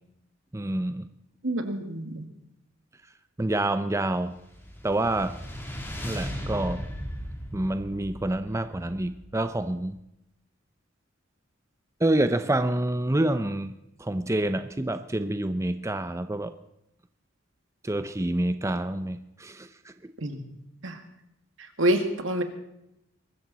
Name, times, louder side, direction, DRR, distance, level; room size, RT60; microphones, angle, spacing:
voice 1, 0.5-1.1 3.4-4.4 4.8-5.4 6.0-6.8 7.5-10.0 12.0-16.5 17.8-19.7, right 1 dB, 15° right, 10 dB, 0.6 m, -27 dB
voice 2, 1.4-2.3 20.2-21.0 21.8-22.4, right 1 dB, 80° right, 6 dB, 2.1 m, -27 dB
sound 1, 4.2-9.7, equal, 10° left, 2.9 m, -37 dB
23.0 x 14.0 x 4.1 m, 0.82 s
head